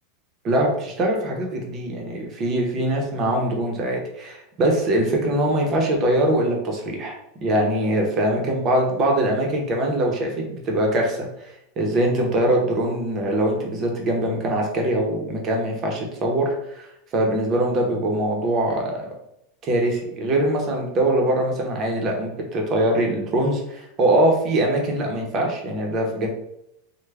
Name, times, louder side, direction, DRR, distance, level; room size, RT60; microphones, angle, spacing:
voice 1, 0.4-7.1 7.4-8.4 8.6-11.3 11.8-19.1 19.6-26.3, right 1 dB, 25° right, 1 dB, 0.7 m, -22 dB
3.4 x 2.1 x 3.3 m, 0.81 s
supercardioid pair, 165°, 0 cm